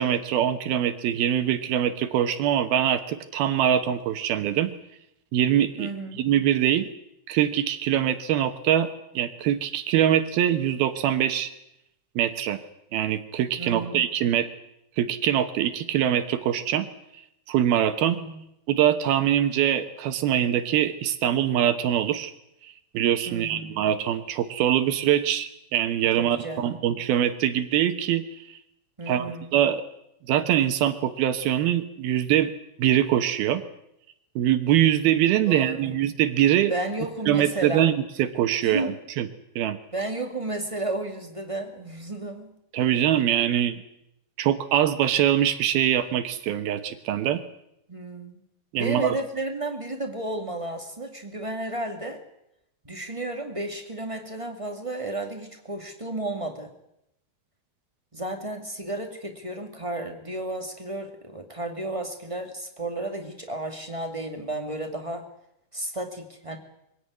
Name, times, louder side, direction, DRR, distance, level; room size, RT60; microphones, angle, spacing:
voice 1, 0.0-4.7 5.3-5.9 6.2-6.9 7.3-11.5 12.2-12.6 12.9-14.5 15.0-16.9 17.5-18.2 18.7-22.3 22.6-28.6 29.1-29.8 30.3-32.5 32.8-33.6 34.4-36.7 37.3-39.3 39.6-39.8 42.7-43.8 44.4-47.4 48.7-49.2, right 11 dB, 75° right, 9 dB, 2.9 m, -23 dB
voice 2, 5.8-6.2 13.6-14.1 18.0-18.4 23.3-23.8 26.2-26.8 29.0-29.5 35.5-35.9 36.7-37.9 38.6-38.9 39.9-42.5 47.9-48.3 48.7-52.2 52.8-56.7 58.1-65.3 65.7-66.6, right 2 dB, 20° right, 4 dB, 0.8 m, -32 dB
23.5 x 16.5 x 9.6 m, 0.82 s
omnidirectional pair, 4.7 m